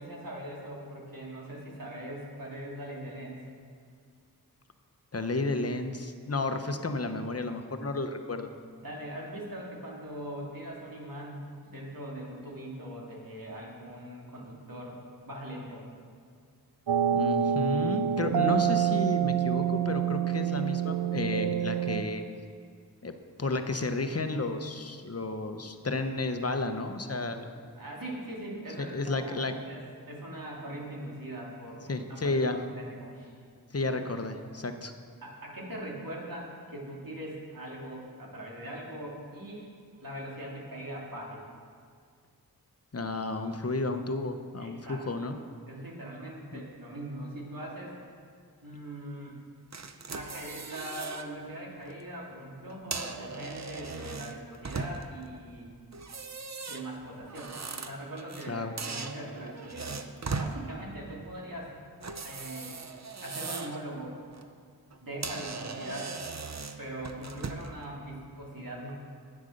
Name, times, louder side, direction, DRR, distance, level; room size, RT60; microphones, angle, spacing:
voice 1, 0.0-3.4 8.8-15.0 15.2-15.8 27.8-33.4 35.2-41.4 44.6-45.3 45.7-48.0 48.6-49.4 50.1-55.7 56.7-60.0 60.4-61.8 62.2-62.8 63.2-64.2 65.0-66.2 66.8-68.9, right 1 dB, 60° right, -4 dB, 2.9 m, -41 dB
voice 2, 5.1-8.5 17.1-22.2 23.0-23.1 23.4-27.6 28.8-29.5 31.9-32.6 33.7-34.9 42.9-45.4 46.5-46.6 58.5-58.7, left 2 dB, 40° left, 7 dB, 0.9 m, -32 dB
sound 1, 16.9-22.0, right 9 dB, 85° right, 0.6 m, -27 dB
sound 2, 49.7-51.3 51.7-51.9 52.7-55.2 55.9-58.5 58.8-60.6 62.0-63.8 64.2-64.5 64.9-65.0 65.2-67.8, right 4 dB, 45° right, 0.7 m, -38 dB
10.5 x 8.9 x 6.6 m, 2.1 s
wide cardioid pair, 60°, 38 cm